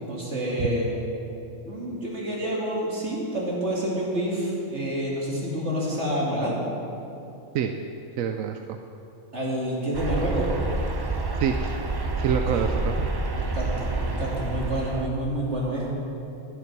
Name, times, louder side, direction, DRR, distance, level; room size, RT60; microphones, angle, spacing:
voice 1, 0.1-0.9 1.6-6.5 9.3-10.5 12.5-12.7 13.3-15.9, right 1 dB, 60° right, -4 dB, 2.9 m, -28 dB
voice 2, 8.2-8.8 11.4-11.8 12.2-13.1, right 8 dB, 90° right, 6 dB, 1.0 m, -26 dB
sound 1, 9.9-15.1, right 2 dB, 35° right, 0.4 m, -28 dB
11.0 x 11.0 x 6.0 m, 2.8 s
omnidirectional pair, 1.4 m